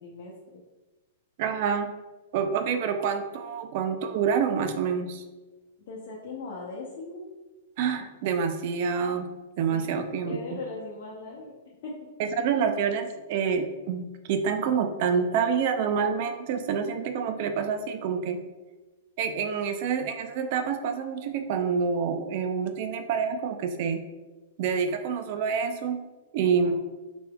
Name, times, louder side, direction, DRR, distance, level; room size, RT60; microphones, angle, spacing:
voice 1, 0.0-0.6 5.9-7.3 9.7-11.5 11.8-11.9 26.4-26.7, left 3 dB, 60° left, -4 dB, 0.8 m, -39 dB
voice 2, 1.4-1.9 2.3-5.2 7.8-9.3 9.6-10.6 12.2-18.4 19.2-24.0 24.6-26.0 26.3-26.7, right 6 dB, 55° right, 7 dB, 0.4 m, -27 dB
4.2 x 3.3 x 2.2 m, 1.2 s
hypercardioid pair, 115°, 0 cm